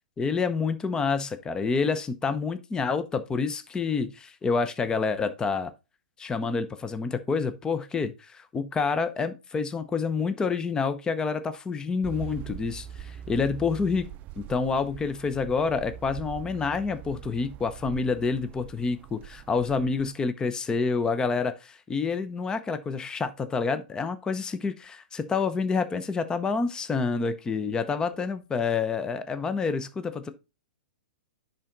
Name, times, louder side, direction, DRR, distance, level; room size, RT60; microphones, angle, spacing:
voice 1, 0.2-5.7 6.2-14.1 14.4-30.3, left 4 dB, 15° left, 0.7 m, -28 dB
sound 1, 12.0-20.1, right 11 dB, 35° right, 0.5 m, -42 dB
10.0 x 3.9 x 3.8 m
hypercardioid pair, 120°, 5 cm